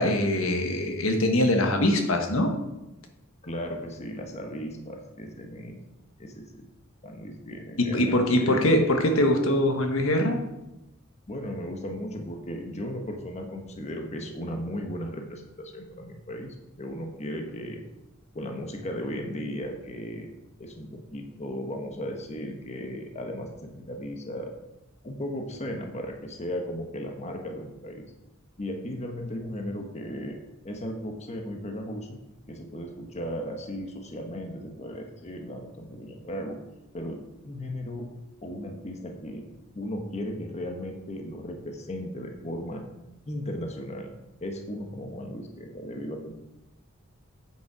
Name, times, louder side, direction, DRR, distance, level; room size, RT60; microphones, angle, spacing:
voice 1, 0.0-2.5 7.8-10.4, left 1 dB, 80° left, 4 dB, 1.4 m, -23 dB
voice 2, 3.4-5.8 6.2-6.7 7.0-8.9 11.3-17.8 18.3-20.3 20.6-24.5 25.0-28.1 28.6-30.4 30.6-32.2 32.5-36.6 36.9-38.1 38.4-39.5 39.7-42.8 43.3-44.1 44.4-46.4, equal, 35° left, 3 dB, 1.1 m, -36 dB
8.7 x 7.2 x 4.9 m, 0.96 s
head